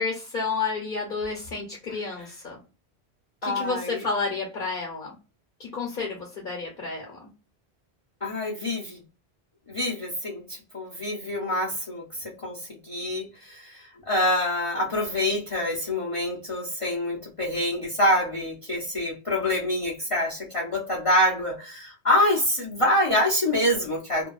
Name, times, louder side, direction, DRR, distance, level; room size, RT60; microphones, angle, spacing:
voice 1, 0.0-2.6 3.4-5.1 5.6-7.2, left 4 dB, 55° left, 1.0 m, -30 dB
voice 2, 3.4-4.0 8.2-9.0 9.7-24.3, left 1 dB, 35° left, 0.6 m, -26 dB
2.7 x 2.2 x 2.3 m
omnidirectional pair, 1.1 m